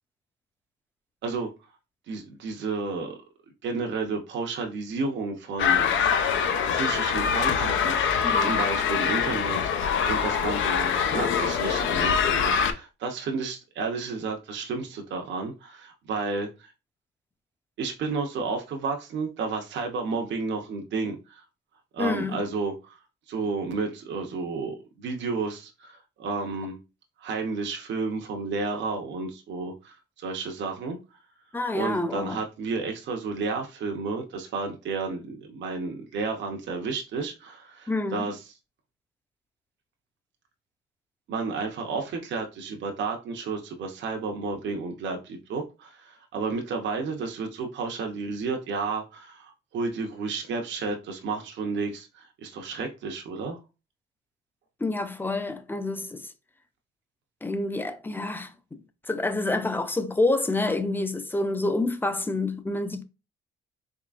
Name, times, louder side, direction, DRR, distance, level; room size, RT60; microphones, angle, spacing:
voice 1, 2.1-3.2 3.6-6.0 6.7-16.7 17.8-21.4 21.9-23.0 23.3-26.8 27.2-31.0 31.7-38.4 41.3-53.6, right 4 dB, 65° right, 0.7 m, -32 dB
sound 1, 5.6-12.7, left 7 dB, 75° left, 0.5 m, -24 dB
voice 2, 8.2-8.6 22.0-22.4 31.5-32.4 37.9-38.3 54.8-56.3 57.4-63.0, left 2 dB, 10° left, 0.5 m, -28 dB
3.7 x 3.1 x 2.4 m
cardioid pair, 90°, 20 cm